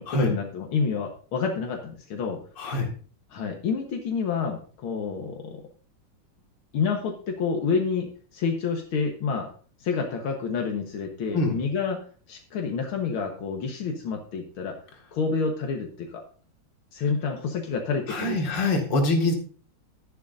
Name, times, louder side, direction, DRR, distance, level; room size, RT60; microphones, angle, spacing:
voice 1, 0.0-2.4 3.3-5.6 6.7-9.5 9.8-12.0 12.3-14.8 15.1-16.2 16.9-18.6, left 5 dB, 85° left, 2 dB, 2.2 m, -28 dB
voice 2, 2.6-2.9 11.3-11.5 18.1-19.3, left 2 dB, 60° left, 1 dB, 2.8 m, -24 dB
12.5 x 10.5 x 2.6 m, 0.40 s
omnidirectional pair, 2.2 m